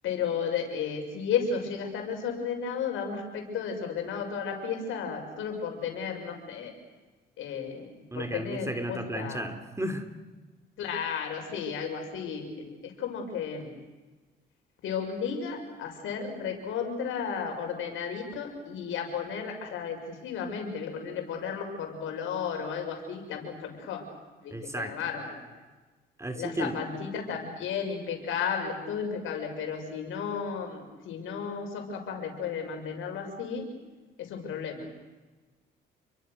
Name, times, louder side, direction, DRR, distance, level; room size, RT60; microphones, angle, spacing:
voice 1, 0.0-6.7 7.4-9.5 10.8-13.8 14.8-24.0 24.4-25.3 26.3-33.7 34.2-34.9, left 6 dB, 85° left, 3 dB, 6.2 m, -33 dB
voice 2, 8.1-10.1 24.5-25.0 26.2-26.9, right 1 dB, 15° right, 8 dB, 3.1 m, -33 dB
29.0 x 23.5 x 6.6 m, 1.2 s
cardioid pair, 90°, 20 cm